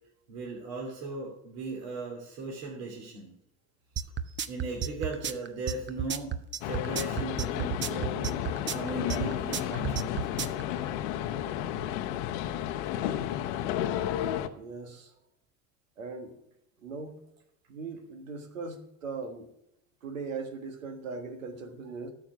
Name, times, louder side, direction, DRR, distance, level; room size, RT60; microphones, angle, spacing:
voice 1, 0.3-3.3 4.2-8.3 8.7-10.5, right 3 dB, 55° right, -2 dB, 3.0 m, -38 dB
sound 1, 4.0-10.6, right 8 dB, 30° right, 0.8 m, -32 dB
sound 2, 6.6-14.5, left 11 dB, 60° left, 0.9 m, -32 dB
voice 2, 14.5-15.1 16.0-16.4 16.8-17.2 17.7-19.5 20.0-22.1, right 4 dB, 80° right, 6 dB, 1.5 m, -39 dB
13.0 x 7.3 x 6.0 m, 0.82 s
figure-of-eight pair, 65°, 39 cm